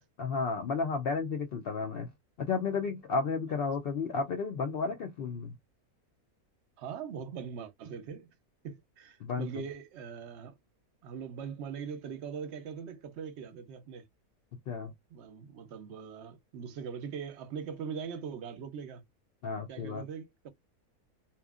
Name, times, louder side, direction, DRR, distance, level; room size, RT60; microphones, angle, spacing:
voice 1, 0.2-2.1 2.4-5.6 9.2-9.6 14.7-14.9 19.4-20.0, left 4 dB, 85° left, 0.5 m, -32 dB
voice 2, 6.8-8.3 8.6-10.6 11.0-14.1 15.1-19.0 19.7-20.5, right 6 dB, 60° right, 0.8 m, -41 dB
2.8 x 2.4 x 2.3 m
omnidirectional pair, 1.6 m